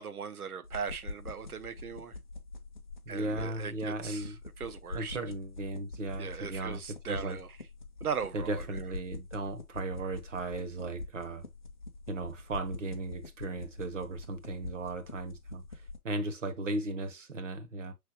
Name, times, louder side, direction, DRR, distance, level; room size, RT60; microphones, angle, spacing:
voice 1, 0.0-2.2 3.1-5.2 6.2-7.6 8.0-8.7, right 6 dB, 80° right, 0.8 m, -39 dB
sound 1, 0.6-16.0, left 3 dB, 35° left, 0.5 m, -45 dB
voice 2, 3.1-4.3 4.9-7.4 8.3-11.5 12.1-17.9, right 2 dB, 55° right, 1.1 m, -36 dB
5.7 x 3.3 x 2.8 m
figure-of-eight pair, 150°, 44 cm